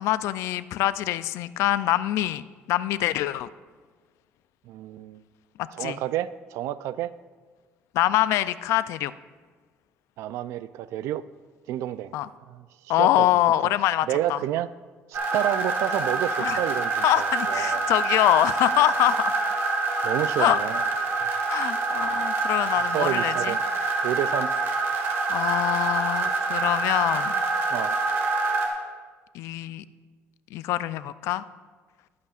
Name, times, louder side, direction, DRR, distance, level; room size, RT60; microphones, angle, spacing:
voice 1, 0.0-3.5 5.8-6.0 7.9-9.1 12.1-12.3 12.9-14.4 16.4-16.6 17.0-19.3 20.4-20.6 21.5-23.6 25.3-27.4 29.3-29.8 30.5-31.4, left 14 dB, 80° left, 15 dB, 0.4 m, -24 dB
voice 2, 4.7-5.2 5.7-7.1 10.2-11.2 11.7-12.1 12.5-13.4 14.1-14.7 15.1-17.8 20.0-20.8 22.9-23.6 24.0-24.5 27.7-28.0, right 12 dB, 75° right, 16 dB, 0.4 m, -29 dB
sound 1, 15.1-28.7, right 3 dB, 55° right, 1.7 m, -26 dB
20.5 x 8.4 x 2.4 m, 1.4 s
cardioid pair, 175°, 5 cm